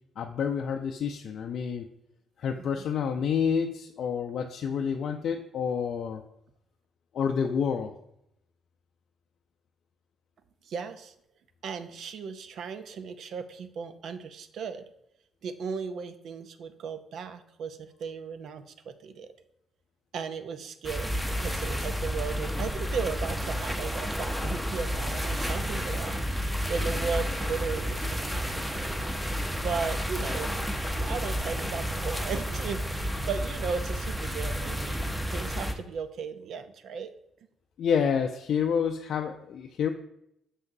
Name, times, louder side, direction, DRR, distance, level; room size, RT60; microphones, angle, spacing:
voice 1, 0.2-1.9 2.4-6.2 7.1-7.9 37.8-39.9, left 7 dB, 60° left, 4 dB, 0.4 m, -28 dB
voice 2, 10.6-11.1 11.6-14.9 15.4-19.3 20.1-28.7 29.6-30.6 31.0-37.1, right 6 dB, 65° right, 10 dB, 0.5 m, -36 dB
sound 1, 20.8-35.7, equal, 5° right, 0.7 m, -31 dB
6.2 x 5.8 x 2.6 m, 0.78 s
cardioid pair, 100°, 0 cm